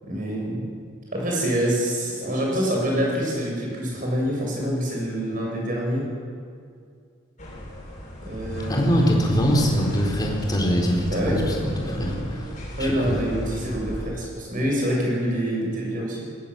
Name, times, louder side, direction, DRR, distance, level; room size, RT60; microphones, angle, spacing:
voice 1, 0.0-0.7 1.1-6.0 8.2-9.1 11.1-11.4 11.9-12.2 12.8-16.3, equal, 40° right, -2 dB, 7.7 m, -26 dB
sound 1, 7.4-14.1, left 1 dB, 35° left, 7.6 m, -33 dB
voice 2, 8.7-12.5 12.8-13.1, equal, 20° left, -1 dB, 4.0 m, -23 dB
20.0 x 18.5 x 7.7 m, 2.3 s
head